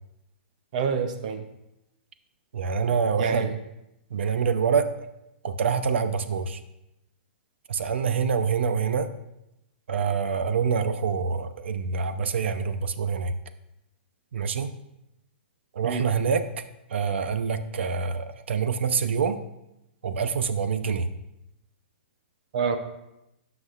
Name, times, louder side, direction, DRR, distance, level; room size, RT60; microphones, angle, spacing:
voice 1, 0.7-1.4 3.2-3.5 15.8-16.1 22.5-22.8, right 6 dB, 40° right, 8 dB, 0.6 m, -26 dB
voice 2, 2.5-3.5 4.1-4.9 5.4-6.6 7.7-9.1 9.9-13.3 14.3-14.7 15.8-16.4 16.9-19.4 20.0-21.1, right 6 dB, 85° right, 10 dB, 0.7 m, -26 dB
15.0 x 6.0 x 2.4 m, 0.88 s
hypercardioid pair, 175°, 6 cm